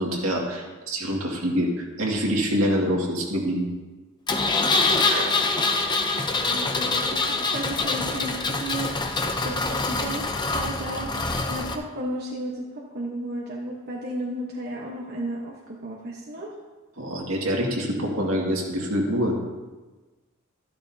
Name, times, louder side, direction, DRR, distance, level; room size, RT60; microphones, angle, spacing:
voice 1, 0.0-3.7 5.1-5.3 17.0-19.3, equal, 70° right, -1 dB, 2.2 m, -25 dB
Engine, 4.3-11.7, left 3 dB, 20° left, 0.7 m, -25 dB
voice 2, 6.4-8.9 9.4-11.1 11.5-16.5, right 1 dB, 45° right, -3 dB, 1.2 m, -33 dB
13.0 x 12.0 x 2.8 m, 1.2 s
head